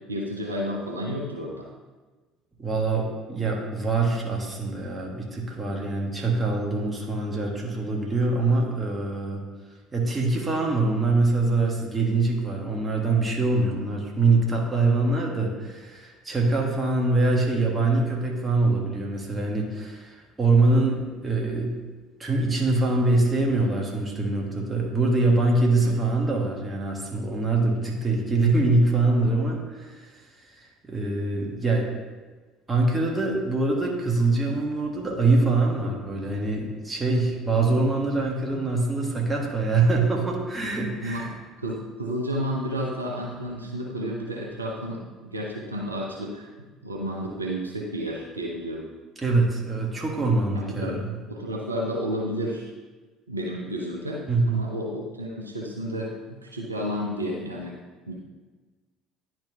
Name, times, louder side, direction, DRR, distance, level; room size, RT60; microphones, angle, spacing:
voice 1, 0.1-1.7 25.8-25.9 41.0-41.3 41.6-46.5 46.8-48.9 50.5-52.7 53.3-57.8 58.1-58.2, equal, 85° right, -2 dB, 0.7 m, -31 dB
voice 2, 2.6-9.4 9.9-21.8 22.2-31.9 32.7-41.3 49.2-51.1 54.3-54.6, right 3 dB, 25° right, -1 dB, 1.6 m, -24 dB
10.5 x 4.5 x 2.8 m, 1.3 s
figure-of-eight pair, 60°, 0 cm